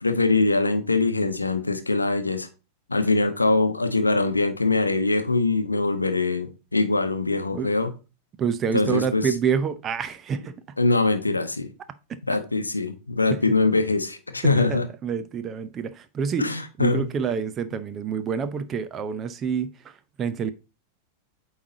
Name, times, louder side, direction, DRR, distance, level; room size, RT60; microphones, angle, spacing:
voice 1, 0.0-2.5 2.9-7.9 8.7-9.2 10.8-11.7 12.3-14.8 16.4-17.0, left 3 dB, 80° left, 0.8 m, -23 dB
voice 2, 8.4-10.8 12.1-12.2 13.3-13.4 14.4-20.5, right 7 dB, 25° right, 0.6 m, -28 dB
8.7 x 3.2 x 3.8 m
figure-of-eight pair, 90°, 0 cm